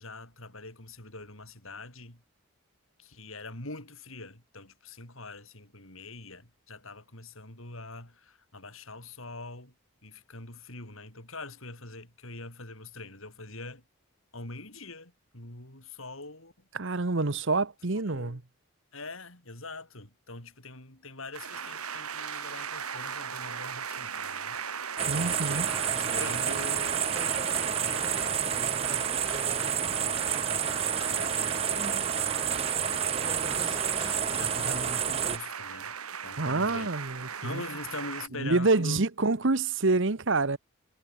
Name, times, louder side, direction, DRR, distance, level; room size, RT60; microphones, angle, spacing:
voice 1, 0.0-2.2 3.0-9.7 10.0-13.8 14.3-16.7 18.1-18.4 18.9-24.6 25.2-25.6 25.9-29.1 29.4-31.9 32.7-36.0 36.2-36.9 37.4-39.1, left 2 dB, 65° left, 7.0 m, -44 dB
voice 2, 16.7-18.4 25.1-25.7 36.4-37.6 38.4-40.6, right 3 dB, 55° right, 1.1 m, -27 dB
sound 1, 21.3-38.3, right 7 dB, 90° right, 4.6 m, -37 dB
sound 2, 25.0-35.4, right 7 dB, 25° right, 1.2 m, -29 dB
head